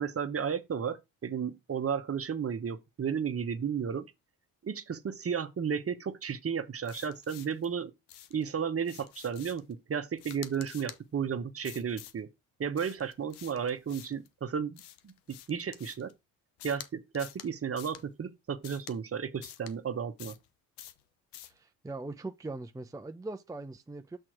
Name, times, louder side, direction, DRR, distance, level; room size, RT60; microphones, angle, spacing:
voice 1, 0.0-4.1 4.6-7.9 8.3-12.3 12.6-15.1 15.5-16.1 16.6-20.4, right 7 dB, 35° right, 1.1 m, -33 dB
sound 1, 6.8-7.7 8.1-8.4 8.8-9.7 10.2-11.0 11.6-12.2 12.7-14.3 14.8-16.1 16.6-16.9 17.1-17.5 17.8-18.0 18.6-19.0 19.4-19.7 20.2-20.5 20.8-21.0 21.3-21.6, left 12 dB, 85° left, 0.9 m, -48 dB
voice 2, 21.5-24.2, right 2 dB, 10° right, 0.7 m, -41 dB
6.2 x 4.5 x 4.9 m
supercardioid pair, 65°, 39 cm